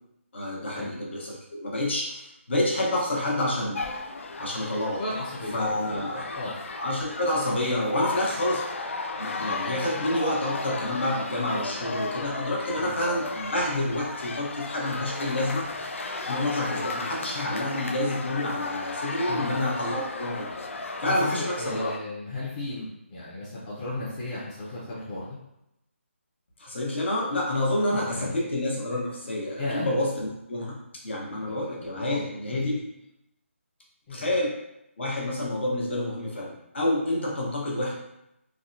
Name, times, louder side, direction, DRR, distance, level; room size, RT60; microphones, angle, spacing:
voice 1, 0.3-3.8 4.4-5.0 5.5-6.2 6.7-8.9 9.2-15.7 16.3-20.7 21.0-21.9 26.6-30.8 31.0-32.8 34.1-34.6 35.0-37.9, left 1 dB, 55° left, -3 dB, 0.9 m, -28 dB
sound 1, 3.7-22.0, left 3 dB, 70° left, 0.4 m, -34 dB
voice 2, 5.0-6.6 12.8-12.9 19.3-19.5 21.1-25.3 27.9-28.4 29.6-29.9 31.3-32.6 34.1-34.3, left 2 dB, 10° left, -10 dB, 0.5 m, -35 dB
3.4 x 2.1 x 2.6 m, 0.84 s
hypercardioid pair, 170°, 7 cm